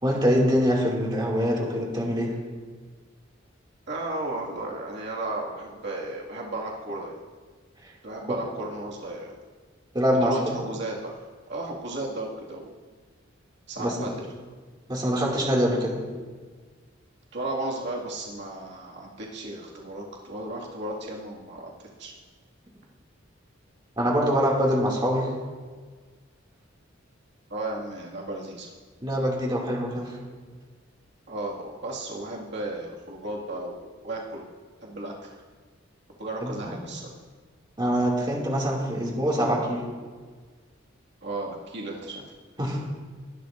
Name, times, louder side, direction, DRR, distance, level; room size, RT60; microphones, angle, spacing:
voice 1, 0.0-2.4 9.9-10.4 13.8-14.0 14.9-16.0 24.0-25.3 29.0-30.2 36.4-36.8 37.8-39.9 42.6-42.9, equal, 25° right, -3 dB, 2.5 m, -24 dB
voice 2, 3.9-7.2 8.0-9.3 10.1-11.2 11.5-12.7 13.7-14.1 17.3-21.7 22.0-22.1 27.5-28.7 31.3-34.4 34.8-35.4 36.2-37.1 41.2-42.2, right 2 dB, 60° right, -4 dB, 2.2 m, -34 dB
22.0 x 12.0 x 2.6 m, 1.5 s
head